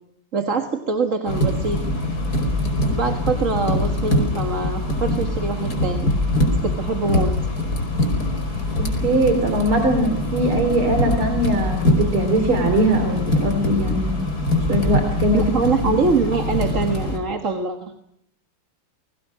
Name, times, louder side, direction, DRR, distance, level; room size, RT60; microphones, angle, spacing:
voice 1, 0.3-1.8 2.9-6.1 6.6-7.4 15.3-17.9, right 4 dB, 40° right, 4 dB, 1.9 m, -23 dB
sound 1, 1.3-17.2, left 1 dB, 45° left, 5.6 m, -23 dB
voice 2, 8.8-14.3 14.7-15.4 15.8-16.0, right 1 dB, 70° right, 6 dB, 4.0 m, -21 dB
29.0 x 22.0 x 6.2 m, 0.73 s
omnidirectional pair, 2.4 m